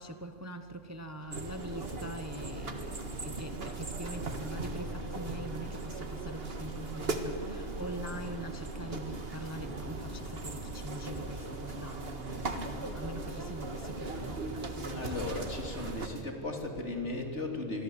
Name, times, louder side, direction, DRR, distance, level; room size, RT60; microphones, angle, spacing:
voice 1, 0.0-15.2, right 1 dB, 15° right, 0.8 m, -43 dB
sound 1, 1.2-16.2, right 1 dB, 30° right, 2.3 m, -52 dB
sound 2, 1.3-16.1, right 2 dB, 50° right, 2.0 m, -38 dB
voice 2, 14.9-17.8, left 2 dB, 65° left, 3.5 m, -36 dB
26.5 x 22.0 x 8.0 m
omnidirectional pair, 1.3 m